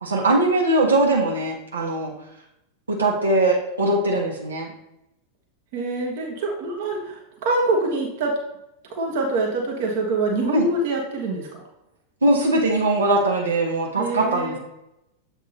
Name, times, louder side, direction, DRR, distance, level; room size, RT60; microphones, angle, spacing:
voice 1, 0.0-2.1 2.9-4.7 10.5-10.7 12.2-14.6, right 2 dB, 75° right, -2 dB, 1.3 m, -21 dB
voice 2, 5.7-8.4 8.9-11.6 13.9-14.6, right 2 dB, 50° right, 0 dB, 1.2 m, -25 dB
7.4 x 3.5 x 4.1 m, 0.85 s
figure-of-eight pair, 90°, 0 cm